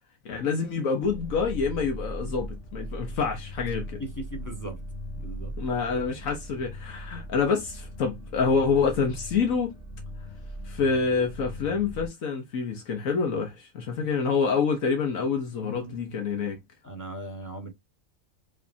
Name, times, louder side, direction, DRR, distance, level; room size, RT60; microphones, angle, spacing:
voice 1, 0.2-4.0 5.6-9.7 10.6-16.6, left 5 dB, 80° left, 1.4 m, -27 dB
sound 1, 1.0-12.1, equal, 55° left, 2.3 m, -39 dB
voice 2, 4.0-4.8 5.2-5.5 15.4-15.9 16.8-17.7, right 1 dB, 15° left, 1.2 m, -38 dB
5.0 x 3.3 x 2.7 m
omnidirectional pair, 1.4 m